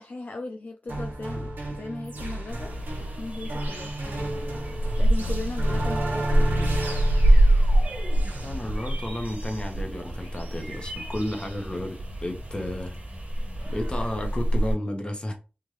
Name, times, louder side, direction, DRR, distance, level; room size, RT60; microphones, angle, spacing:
voice 1, 0.0-2.7 3.2-3.9 5.0-6.6, left 2 dB, 50° left, 0.4 m, -37 dB
sound 1, 0.9-10.6, right 1 dB, 90° right, 1.3 m, -33 dB
sound 2, 2.1-14.0, right 1 dB, 15° right, 1.1 m, -44 dB
sound 3, 2.5-14.7, right 1 dB, 50° right, 1.6 m, -25 dB
voice 2, 8.4-12.9 13.7-15.3, left 1 dB, 30° left, 1.2 m, -32 dB
3.6 x 2.6 x 3.2 m
cardioid pair, 40°, 3 cm